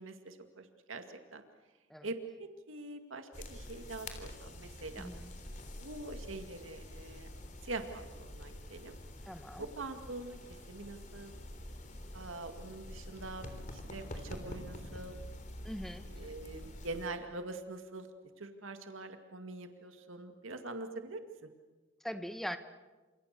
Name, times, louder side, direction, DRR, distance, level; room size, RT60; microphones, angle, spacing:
voice 1, 0.0-1.4 2.0-5.1 5.8-7.3 7.6-9.0 9.6-10.4 10.7-11.3 12.1-15.2 16.0-18.1 18.4-21.5, right 2 dB, 90° right, 6 dB, 2.2 m, -44 dB
sound 1, 3.3-17.1, left 1 dB, 40° left, 3.5 m, -47 dB
voice 2, 5.0-5.3 9.3-9.6 15.6-16.0 22.0-22.6, equal, ahead, 8 dB, 1.4 m, -41 dB
29.0 x 27.5 x 6.8 m, 1.2 s
head